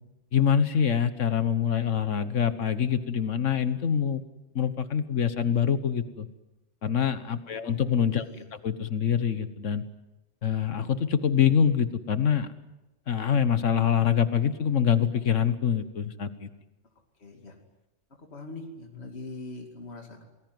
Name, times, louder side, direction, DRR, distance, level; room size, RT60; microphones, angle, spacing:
voice 1, 0.3-4.2 4.5-6.3 6.8-8.3 8.6-9.8 10.4-12.5 13.1-16.5, left 8 dB, 85° left, 12 dB, 1.6 m, -25 dB
voice 2, 8.1-8.4 17.2-17.6 18.2-20.3, left 2 dB, 60° left, 3 dB, 2.9 m, -42 dB
28.0 x 20.0 x 9.4 m, 0.99 s
omnidirectional pair, 1.2 m